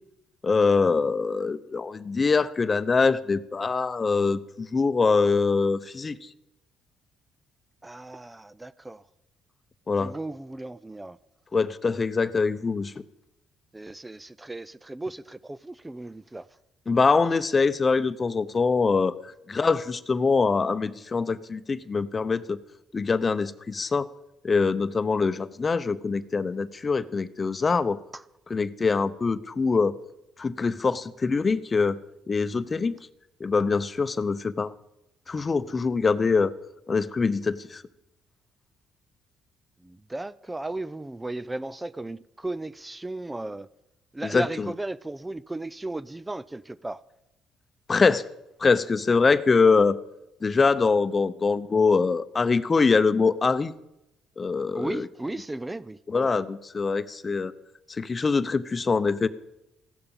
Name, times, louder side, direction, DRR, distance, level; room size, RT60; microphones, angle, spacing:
voice 1, 0.4-6.2 9.9-10.1 11.5-12.9 16.9-19.2 19.5-22.6 22.9-24.1 24.4-28.0 28.5-30.0 30.4-32.0 32.3-32.9 33.4-34.7 35.3-36.5 36.9-37.8 44.3-44.7 47.9-48.2 48.6-50.0 50.4-53.7 54.4-55.0 56.1-57.5 58.0-59.3, left 4 dB, 30° left, 0.8 m, -23 dB
voice 2, 7.8-9.0 10.0-11.2 13.7-16.5 28.1-28.2 39.8-43.7 44.1-47.0 54.7-56.4, right 2 dB, 15° right, 0.5 m, -35 dB
15.5 x 12.0 x 5.7 m
supercardioid pair, 75°, 0 cm